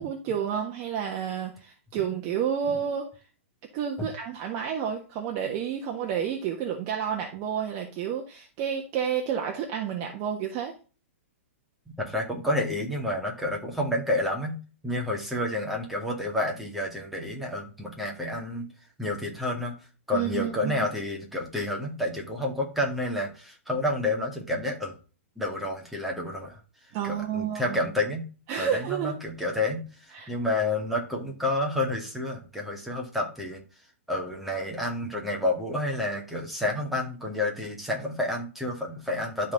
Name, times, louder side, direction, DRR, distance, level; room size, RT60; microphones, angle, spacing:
voice 1, 0.0-3.1 3.7-10.7 20.1-20.7 26.9-27.8 28.5-29.1 30.1-30.3, right 8 dB, 40° right, 2 dB, 1.4 m, -30 dB
voice 2, 12.0-18.7 19.0-19.7 20.1-25.0 25.4-26.6 27.0-28.3 28.6-33.6 34.1-39.5, left 1 dB, ahead, -1 dB, 2.2 m, -29 dB
12.0 x 4.2 x 4.0 m, 0.35 s
hypercardioid pair, 135°, 7 cm